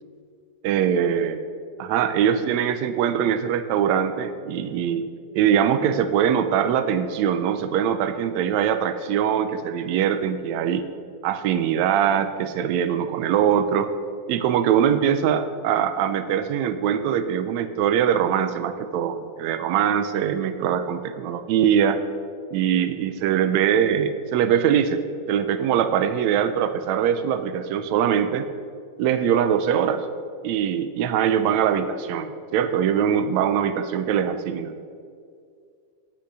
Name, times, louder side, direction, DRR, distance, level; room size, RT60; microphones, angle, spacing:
voice 1, 0.6-1.4 1.8-5.1 5.3-10.8 11.2-13.9 14.3-22.0 22.5-25.0 25.3-28.5 29.0-30.1 30.4-34.8, right 8 dB, 75° right, 11 dB, 1.8 m, -22 dB
8.6 x 8.2 x 6.1 m, 2.2 s
omnidirectional pair, 3.5 m